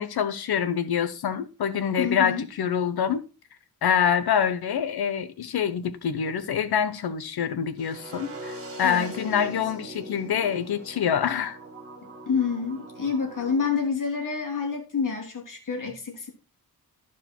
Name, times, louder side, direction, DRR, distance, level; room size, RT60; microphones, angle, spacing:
voice 1, 0.0-3.2 3.8-11.6, left 8 dB, 85° left, 1.0 m, -26 dB
voice 2, 2.0-2.5 8.8-9.6 12.3-16.3, left 5 dB, 55° left, 2.8 m, -28 dB
sound 1, 7.8-13.8, right 1 dB, 40° right, 2.1 m, -41 dB
13.0 x 4.9 x 4.4 m
wide cardioid pair, 135°, 37 cm